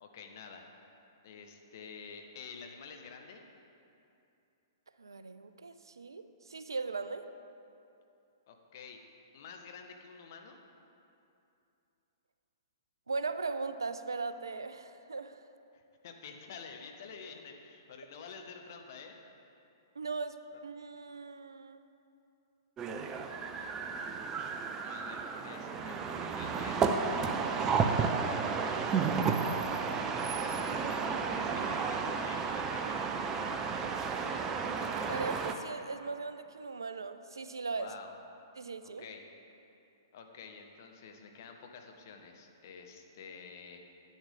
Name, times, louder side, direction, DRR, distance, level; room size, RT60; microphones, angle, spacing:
voice 1, 0.0-0.9 1.2-3.4 8.5-9.0 9.3-10.6 15.7-19.2 20.5-20.6 24.8-29.7 30.3-31.0 31.3-33.1 37.8-38.1 39.0-39.2 40.1-43.8, left 5 dB, 45° left, 4 dB, 1.0 m, -49 dB
voice 2, 5.0-7.3 13.1-15.4 20.0-21.8 35.1-37.9 38.6-39.0, right 4 dB, 70° right, 11 dB, 0.4 m, -38 dB
sound 1, 22.8-35.5, right 5 dB, 20° right, 0.5 m, -32 dB
10.0 x 9.2 x 3.6 m, 2.7 s
figure-of-eight pair, 115°, 2 cm